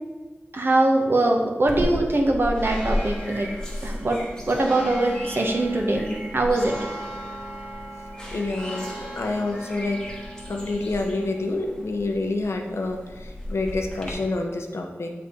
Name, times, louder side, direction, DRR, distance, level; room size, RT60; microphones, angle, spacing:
voice 1, 0.5-3.5 3.8-4.2 4.5-6.1 6.3-6.7, right 2 dB, 55° right, 1 dB, 1.0 m, -22 dB
sound 1, 1.7-14.1, equal, 15° left, 1.1 m, -34 dB
voice 2, 8.3-10.0 10.5-15.1, left 2 dB, 75° left, 3 dB, 0.7 m, -28 dB
7.3 x 3.5 x 4.4 m, 1.3 s
wide cardioid pair, 85°, 5 cm